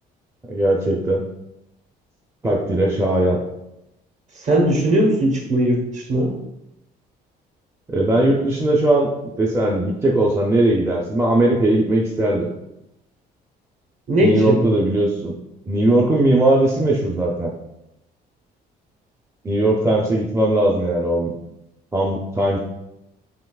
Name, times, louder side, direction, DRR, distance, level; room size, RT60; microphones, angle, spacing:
voice 1, 0.5-1.3 2.4-3.4 7.9-9.1 9.4-12.5 14.2-15.3 15.7-17.5 19.4-21.3 21.9-22.6, right 1 dB, 15° right, -2 dB, 0.5 m, -19 dB
voice 2, 4.4-6.4 14.1-14.6, right 1 dB, 45° right, 1 dB, 1.2 m, -18 dB
5.6 x 3.2 x 2.3 m, 0.87 s
cardioid pair, 110°, 17 cm